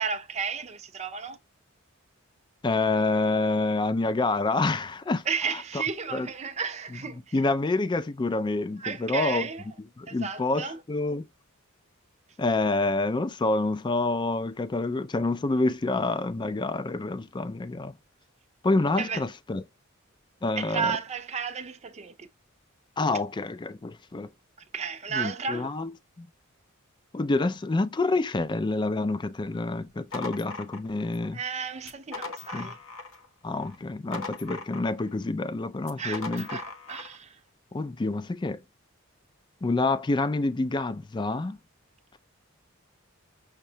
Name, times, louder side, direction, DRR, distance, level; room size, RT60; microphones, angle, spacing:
voice 1, 0.0-1.4 5.3-7.3 8.8-9.7 10.1-10.8 19.0-19.2 20.6-22.3 24.7-25.7 31.3-32.8 36.0-37.4, right 6 dB, 30° right, 0.5 m, -33 dB
voice 2, 2.6-5.2 5.7-5.8 6.1-6.3 7.3-9.5 10.0-11.3 12.4-17.9 18.6-19.6 20.4-21.0 23.0-24.3 25.1-25.9 26.2-26.3 27.1-31.4 32.5-32.7 33.4-36.5 37.7-38.6 39.6-41.6, left 3 dB, 20° left, 0.3 m, -27 dB
sound 1, 29.8-31.3 31.8-33.3 33.6-35.1 35.8-37.2, left 3 dB, 70° left, 0.8 m, -39 dB
6.2 x 2.2 x 2.7 m
head